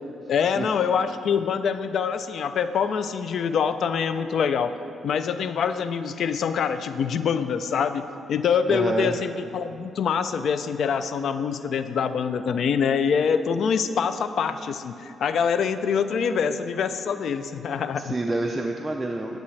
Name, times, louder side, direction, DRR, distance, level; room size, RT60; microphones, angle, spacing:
voice 1, 0.3-4.8 5.0-8.0 8.3-18.1, left 6 dB, 65° left, 11 dB, 0.3 m, -25 dB
voice 2, 8.7-9.1 18.0-19.4, right 2 dB, 15° right, 2 dB, 0.4 m, -27 dB
8.2 x 6.3 x 3.2 m, 2.8 s
cardioid pair, 95°, 0 cm